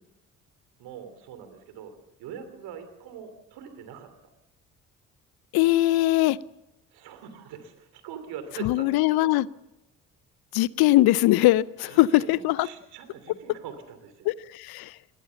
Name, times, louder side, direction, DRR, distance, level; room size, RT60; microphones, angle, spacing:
voice 1, 0.8-1.9 2.2-4.1 6.9-9.3 11.8-14.3, right 7 dB, 75° right, 9 dB, 3.1 m, -42 dB
voice 2, 5.5-6.4 8.6-9.5 10.5-12.7 14.3-14.9, left 17 dB, 70° left, 20 dB, 0.6 m, -21 dB
20.5 x 18.0 x 7.0 m, 0.94 s
hypercardioid pair, 50°, 39 cm